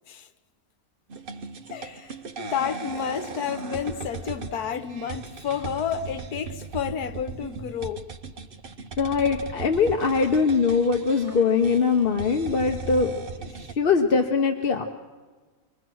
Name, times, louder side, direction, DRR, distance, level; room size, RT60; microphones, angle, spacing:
sound 1, 1.1-13.7, right 4 dB, 45° right, 0.8 m, -38 dB
voice 1, 1.7-8.1, left 8 dB, 75° left, 1.5 m, -31 dB
voice 2, 9.0-13.1 13.4-13.5 13.8-14.8, left 5 dB, 40° left, 0.9 m, -22 dB
24.5 x 21.5 x 6.2 m
omnidirectional pair, 1.7 m